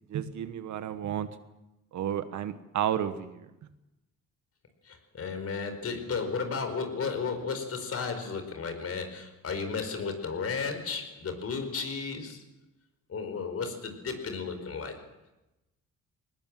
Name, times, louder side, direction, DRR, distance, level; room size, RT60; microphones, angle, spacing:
voice 1, 0.1-1.3 1.9-3.7, right 10 dB, 70° right, 11 dB, 1.4 m, -32 dB
voice 2, 4.8-12.4 13.1-15.0, left 5 dB, 50° left, 7 dB, 4.9 m, -34 dB
20.0 x 20.0 x 7.5 m, 0.99 s
cardioid pair, 90°, 30 cm